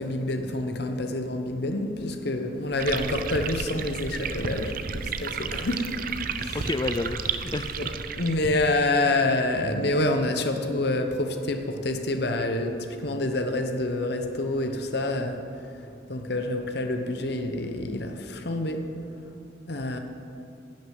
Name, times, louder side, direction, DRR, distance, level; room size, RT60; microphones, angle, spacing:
voice 1, 0.0-5.9 6.4-6.6 7.8-7.9 8.2-15.4 16.1-18.8 19.7-20.0, left 2 dB, 55° left, 6 dB, 1.0 m, -27 dB
sound 1, 2.8-8.7, right 6 dB, 45° right, 0.5 m, -32 dB
voice 2, 6.5-8.0, left 2 dB, 20° left, 9 dB, 0.3 m, -30 dB
11.0 x 6.5 x 9.4 m, 2.5 s
head